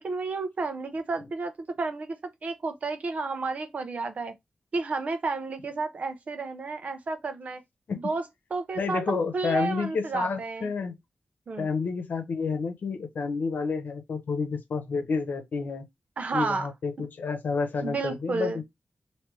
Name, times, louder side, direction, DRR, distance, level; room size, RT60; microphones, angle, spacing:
voice 1, 0.0-1.5 1.8-2.2 2.4-4.3 4.7-7.6 8.0-8.2 8.5-10.7 11.5-11.7 16.2-16.7 17.8-18.6, right 3 dB, 55° right, 0.8 m, -31 dB
voice 2, 8.7-11.0 11.6-15.9 16.3-18.6, left 4 dB, 90° left, 0.9 m, -30 dB
3.3 x 2.9 x 3.1 m
wide cardioid pair, 165°, 3 cm